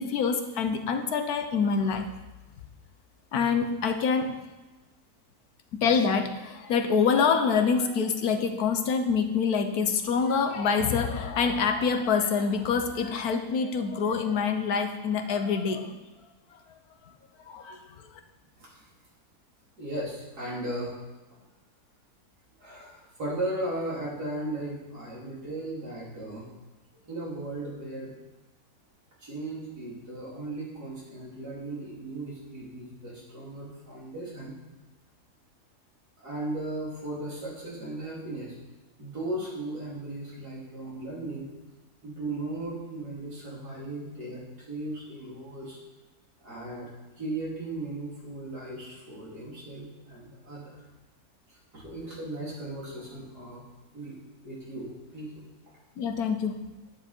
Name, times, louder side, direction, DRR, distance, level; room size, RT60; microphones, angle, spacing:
voice 1, 0.0-2.1 3.3-4.4 5.7-16.0 16.5-16.6 17.5-17.9 56.0-56.6, left 5 dB, 80° left, 7 dB, 1.4 m, -26 dB
voice 2, 19.8-20.9 22.6-26.5 27.0-28.1 29.2-34.6 36.2-38.6 39.0-41.5 42.0-45.8 46.4-50.8 51.5-53.7 53.9-55.5, right 2 dB, 90° right, -6 dB, 4.0 m, -37 dB
9.9 x 9.6 x 4.5 m, 1.1 s
omnidirectional pair, 1.6 m